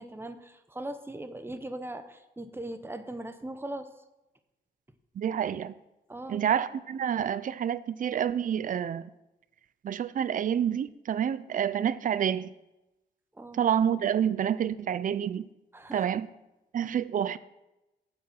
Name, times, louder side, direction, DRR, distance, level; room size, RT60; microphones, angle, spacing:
voice 1, 0.0-3.9 6.1-6.4 13.3-13.6 15.7-16.1, right 1 dB, 10° right, 9 dB, 0.8 m, -39 dB
voice 2, 5.2-5.7 6.3-9.1 9.8-12.5 13.5-15.5 15.9-16.3 16.7-17.4, right 9 dB, 45° right, 16 dB, 0.4 m, -28 dB
9.0 x 4.9 x 7.4 m, 0.96 s
cardioid pair, 95°, 19 cm